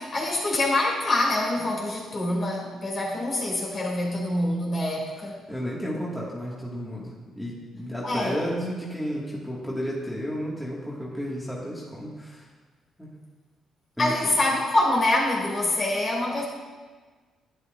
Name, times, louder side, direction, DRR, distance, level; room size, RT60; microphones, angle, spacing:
voice 1, 0.0-5.4 8.0-8.4 14.0-16.4, left 1 dB, 45° left, -3 dB, 2.6 m, -25 dB
voice 2, 5.5-12.5 13.0-13.1 14.0-14.1, equal, 5° left, -6 dB, 1.8 m, -32 dB
11.0 x 9.1 x 2.5 m, 1.4 s
cardioid pair, 90°, 0 cm